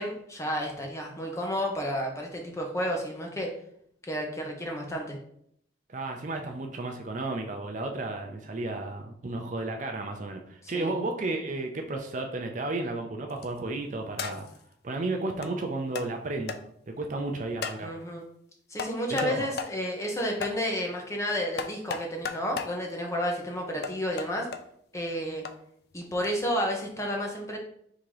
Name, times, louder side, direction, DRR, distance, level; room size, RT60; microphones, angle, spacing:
voice 1, 0.0-3.5 4.0-5.2 10.6-10.9 17.8-18.2 18.7-24.5 24.9-25.4 25.9-27.6, equal, 15° left, 1 dB, 0.8 m, -31 dB
voice 2, 5.9-14.5 14.8-16.6 16.9-17.9 19.1-19.5, right 2 dB, 40° right, 4 dB, 0.5 m, -33 dB
sound 1, 13.3-13.6 14.2-14.6 15.4-15.5 16.0-16.1 16.5-16.6 17.6-17.8 18.8-19.3 19.6-19.7 20.4-20.6 21.6-22.7 23.8-24.6 25.5-25.6 26.2-26.4, left 6 dB, 60° left, 0.4 m, -35 dB
3.8 x 2.8 x 4.7 m, 0.70 s
head